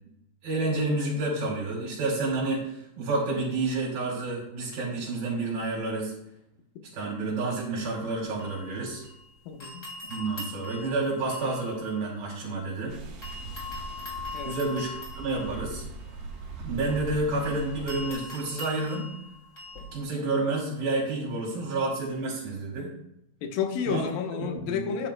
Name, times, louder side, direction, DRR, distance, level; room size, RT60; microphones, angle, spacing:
voice 1, 0.4-6.1 6.9-9.0 10.1-12.9 14.4-15.9 16.6-19.1 19.9-22.9 23.9-24.0 24.4-24.9, right 2 dB, 65° right, -5 dB, 4.4 m, -29 dB
sound 1, 7.8-9.3 9.6-12.8 13.2-20.0, left 3 dB, 25° left, 2.5 m, -42 dB
voice 2, 9.5-9.9 14.3-14.6 23.4-25.1, left 7 dB, 70° left, 4 dB, 2.7 m, -31 dB
sound 2, 12.9-18.1, right 3 dB, 85° right, 3.4 m, -40 dB
12.0 x 9.9 x 2.2 m, 0.80 s
omnidirectional pair, 4.5 m